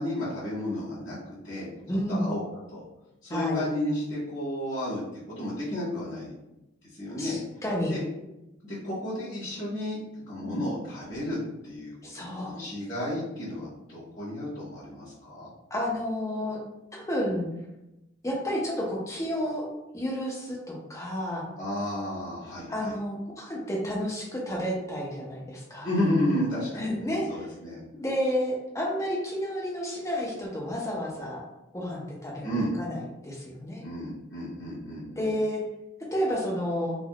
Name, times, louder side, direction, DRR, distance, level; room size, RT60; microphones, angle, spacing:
voice 1, 0.0-1.7 2.1-2.4 2.7-2.8 3.2-6.3 6.9-7.4 7.9-8.0 8.6-10.0 10.3-11.4 11.6-15.5 21.6-23.0 25.8-27.8 32.4-32.7 33.8-35.3, left 1 dB, 40° left, -14 dB, 1.2 m, -32 dB
voice 2, 1.9-2.3 3.3-3.6 7.2-8.0 10.4-10.6 12.0-12.6 15.7-16.6 16.9-17.5 18.2-19.7 19.9-21.5 22.7-25.9 26.7-27.4 27.9-31.4 31.7-33.9 35.2-35.6 36.1-37.0, equal, 15° left, -3 dB, 0.6 m, -31 dB
3.4 x 2.3 x 2.3 m, 0.93 s
head